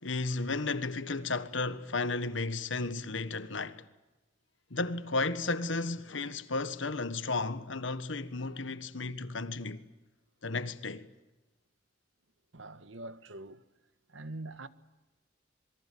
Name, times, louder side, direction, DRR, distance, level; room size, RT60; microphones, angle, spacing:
voice 1, 0.0-3.8 4.7-9.9 10.4-11.1, left 3 dB, 80° left, 1.5 m, -33 dB
voice 2, 12.5-13.6 14.1-14.7, right 2 dB, 85° right, 1.6 m, -43 dB
27.0 x 23.0 x 8.6 m
head